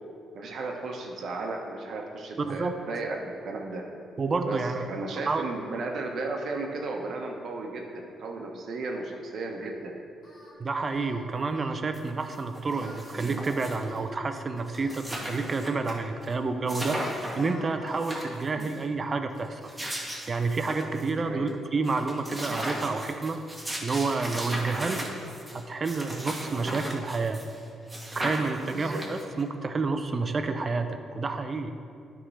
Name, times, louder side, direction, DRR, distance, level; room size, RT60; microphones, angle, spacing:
voice 1, 0.3-3.2 3.4-3.8 4.4-4.6 4.9-9.9 18.6-18.7 21.2-21.5 24.9-25.1 26.6-26.7 28.6-29.0, right 3 dB, 65° right, 2 dB, 1.1 m, -35 dB
voice 2, 2.4-2.7 4.2-4.9 5.3-5.5 10.6-17.0 17.4-19.6 20.3-23.4 23.8-25.0 25.5-27.4 28.1-31.7, right 3 dB, 35° right, 8 dB, 0.6 m, -29 dB
Singing, 10.2-10.6 10.9-11.3 11.5-11.8 12.6-14.2 14.8-16.6 16.8-18.1, left 2 dB, 50° left, 1.7 m, -47 dB
sound 1, 11.9-12.0 12.3-14.0 14.4-14.5 14.7-15.9 16.2-16.3 16.7-17.5 17.9-18.8 19.4-21.1 21.5-21.6 21.8-27.6 27.9-29.4, right 1 dB, 10° right, 1.4 m, -36 dB
9.8 x 3.7 x 5.6 m, 2.4 s
cardioid pair, 90°, 0 cm